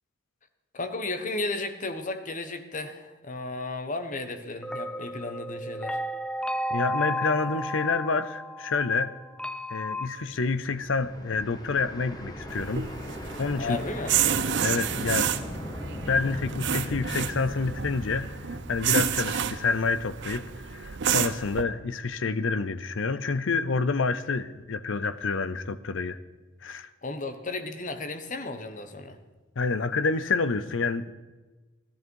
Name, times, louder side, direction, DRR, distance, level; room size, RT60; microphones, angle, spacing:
voice 1, 0.7-6.0 13.6-14.1 27.0-29.2, left 2 dB, 40° left, 1.1 m, -34 dB
sound 1, 4.6-10.1, equal, 5° left, 0.5 m, -33 dB
voice 2, 6.7-9.2 9.7-12.9 13.4-13.8 14.6-15.3 16.1-26.2 26.6-26.9 29.6-31.1, left 4 dB, 70° left, 0.6 m, -28 dB
sound 2, 10.3-20.3, left 1 dB, 20° left, 1.5 m, -39 dB
sound 3, 12.5-21.6, right 8 dB, 65° right, 0.7 m, -30 dB
15.0 x 13.5 x 4.7 m
head